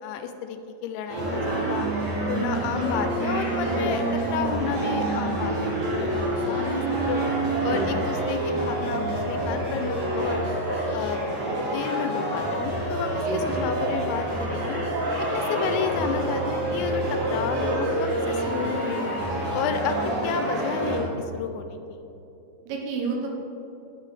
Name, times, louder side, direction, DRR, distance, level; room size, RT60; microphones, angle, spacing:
voice 1, 0.0-1.9 2.3-5.7 6.0-7.2 7.6-10.4 10.9-11.2 11.7-14.8 15.3-19.2 19.5-22.0, left 7 dB, 85° left, 7 dB, 3.1 m, -31 dB
sound 1, 1.1-21.0, right 1 dB, 55° right, 2.7 m, -27 dB
voice 2, 7.7-8.1 13.3-13.4 22.7-23.3, right 4 dB, 80° right, 0 dB, 3.4 m, -30 dB
9.8 x 7.5 x 3.2 m, 2.8 s
omnidirectional pair, 5.9 m